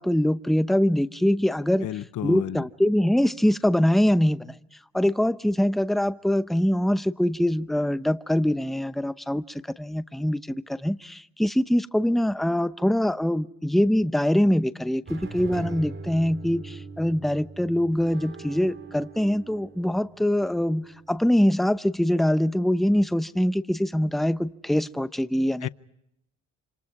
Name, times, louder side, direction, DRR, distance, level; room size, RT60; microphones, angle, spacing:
voice 1, 0.0-1.9 2.2-4.5 4.9-25.7, left 1 dB, ahead, 0.8 m, -23 dB
voice 2, 1.8-2.7 25.6-25.7, left 13 dB, 75° left, 0.8 m, -32 dB
sound 1, 15.1-21.2, right 4 dB, 40° right, 3.5 m, -41 dB
28.0 x 27.0 x 4.8 m
cardioid pair, 90°, 30 cm